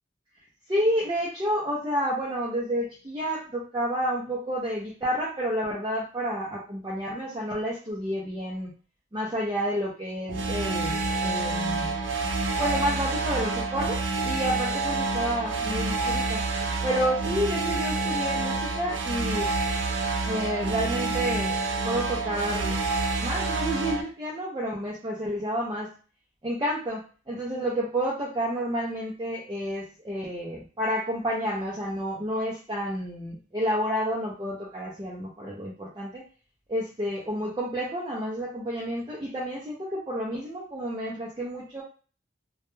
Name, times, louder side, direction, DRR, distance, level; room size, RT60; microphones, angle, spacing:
voice 1, 0.7-8.7 9.1-12.0 12.6-16.4 16.8-19.5 20.2-21.6 21.8-22.8 23.2-25.9 26.4-36.2 36.7-41.8, equal, 20° right, -5 dB, 0.4 m, -30 dB
sound 1, 10.3-24.0, right 3 dB, 90° right, 0.5 m, -28 dB
2.2 x 2.1 x 3.0 m, 0.38 s
head